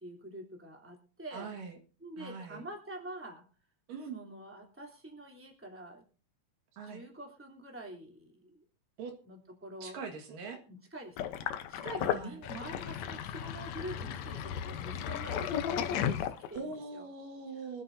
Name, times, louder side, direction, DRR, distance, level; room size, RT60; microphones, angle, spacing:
voice 1, 0.0-1.5 2.0-3.4 4.1-6.0 6.9-8.6 9.2-10.0 10.7-17.1, right 1 dB, 5° right, 0 dB, 2.8 m, -46 dB
voice 2, 1.3-1.8 2.2-2.6 3.9-4.2 6.7-7.0 9.0-9.1 9.8-10.6 12.0-12.4 16.6-17.8, right 4 dB, 75° right, 3 dB, 3.5 m, -42 dB
Sink (filling or washing), 11.2-16.7, left 9 dB, 65° left, 1.9 m, -34 dB
25.0 x 9.7 x 2.7 m, 0.38 s
omnidirectional pair, 3.9 m